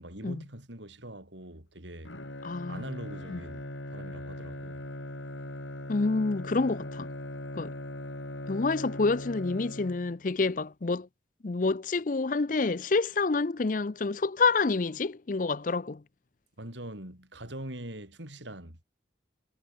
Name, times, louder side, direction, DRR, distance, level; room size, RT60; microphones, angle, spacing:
voice 1, 0.0-2.1 2.7-4.8 16.6-18.8, right 1 dB, 80° right, 6.7 m, -43 dB
Bowed string instrument, 2.0-10.4, left 1 dB, 90° left, 6.3 m, -40 dB
voice 2, 2.4-2.8 3.3-3.4 5.9-7.1 7.6-7.7 8.5-11.1 11.4-16.0, left 3 dB, 45° left, 0.5 m, -28 dB
head